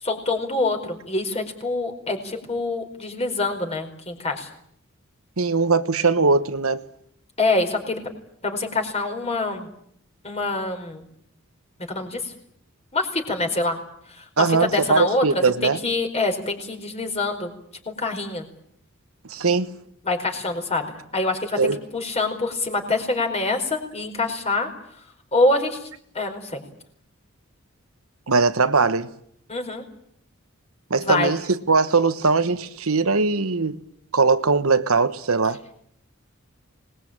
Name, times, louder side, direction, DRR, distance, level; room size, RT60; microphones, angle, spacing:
voice 1, 0.0-4.5 7.4-8.0 8.4-9.7 10.2-11.0 11.9-12.3 12.9-13.8 14.1-17.5 17.8-18.4 20.0-21.6 21.9-24.7 25.3-25.9 26.1-26.6 29.5-29.8 31.0-31.3, left 2 dB, 30° left, 4.8 m, -25 dB
voice 2, 5.4-6.8 14.4-15.8 19.3-19.7 21.6-21.8 28.3-29.1 30.9-33.8 34.1-35.6, right 4 dB, 90° right, 1.3 m, -20 dB
25.0 x 20.5 x 8.8 m
head